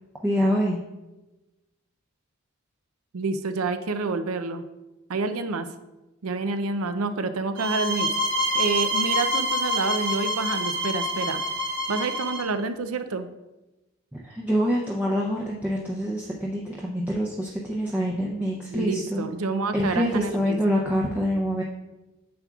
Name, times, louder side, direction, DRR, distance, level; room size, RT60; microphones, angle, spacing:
voice 1, 0.2-0.8 14.1-19.3 19.7-21.6, equal, 5° right, -3 dB, 0.5 m, -26 dB
voice 2, 3.1-4.6 5.1-5.7 6.2-8.1 8.5-11.4 11.9-13.3 18.7-20.6, right 3 dB, 85° right, 10 dB, 0.6 m, -28 dB
sound 1, 7.6-12.5, equal, 60° right, 1.0 m, -26 dB
9.3 x 6.9 x 2.4 m, 1.1 s
head